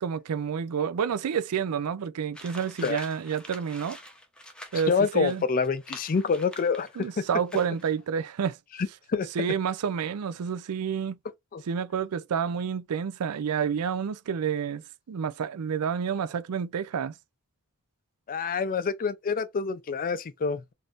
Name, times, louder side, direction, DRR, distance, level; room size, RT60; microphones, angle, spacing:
voice 1, 0.0-4.0 4.7-5.4 7.0-8.6 9.3-11.2 11.7-14.8 15.1-17.2, right 7 dB, 90° right, 0.4 m, -29 dB
sound 1, 2.3-7.1 7.5-8.0, left 1 dB, 5° left, 0.7 m, -47 dB
voice 2, 4.9-7.3 9.1-9.3 11.5-11.6 18.3-20.7, left 5 dB, 40° left, 0.4 m, -27 dB
3.5 x 2.6 x 2.4 m
head